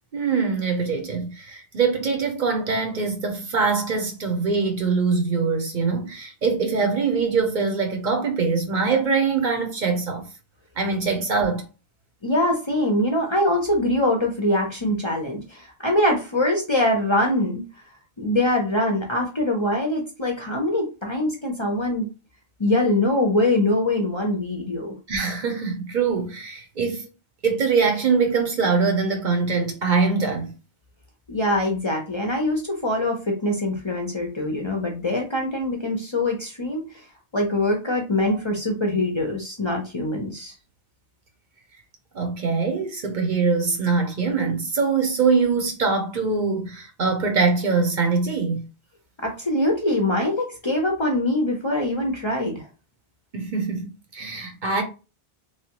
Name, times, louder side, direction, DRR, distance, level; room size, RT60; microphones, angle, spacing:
voice 1, 0.1-10.3 10.8-11.6 25.1-27.1 27.4-30.5 42.1-48.6 53.3-54.8, right 4 dB, 55° right, 0.8 m, -23 dB
voice 2, 12.2-17.6 18.2-22.1 22.6-24.9 31.3-37.0 37.3-40.5 49.2-52.7, left 1 dB, 35° left, 0.6 m, -23 dB
3.1 x 2.2 x 2.8 m
omnidirectional pair, 1.1 m